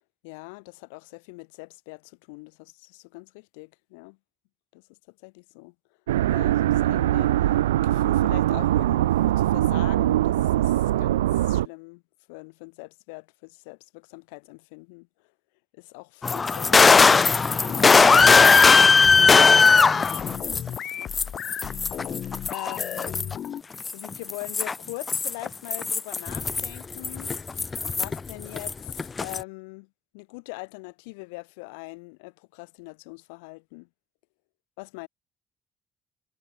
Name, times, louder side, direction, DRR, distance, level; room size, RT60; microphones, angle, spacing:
voice 1, 0.2-4.2 4.7-5.7 6.3-12.0 12.3-15.1 15.7-18.1 18.5-21.2 21.5-22.0 22.5-23.3 23.9-29.9 30.1-33.9 34.8-35.1, left 30 dB, 75° left, 2.0 m, -43 dB
sound 1, 6.1-11.7, right 13 dB, 80° right, 0.5 m, -22 dB
sound 2, 16.2-20.8 21.1-23.3 23.8-28.3 28.6-29.4, left 4 dB, 35° left, 1.2 m, -18 dB
sound 3, 17.7-23.6, left 9 dB, 55° left, 1.8 m, -34 dB
figure-of-eight pair, 45°, 0 cm